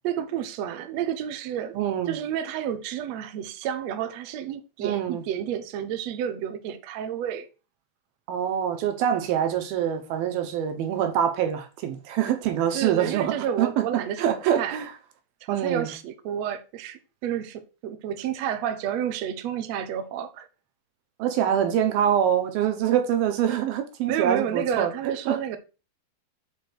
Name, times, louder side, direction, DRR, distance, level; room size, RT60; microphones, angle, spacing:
voice 1, 0.0-1.8 2.1-7.5 12.7-14.8 15.4-20.5 24.1-25.6, right 9 dB, 70° right, 1.7 m, -30 dB
voice 2, 1.7-2.2 4.8-5.2 8.3-13.8 14.2-14.9 15.5-15.9 21.2-25.6, right 9 dB, 85° right, 3.0 m, -25 dB
6.2 x 5.2 x 6.2 m
omnidirectional pair, 4.1 m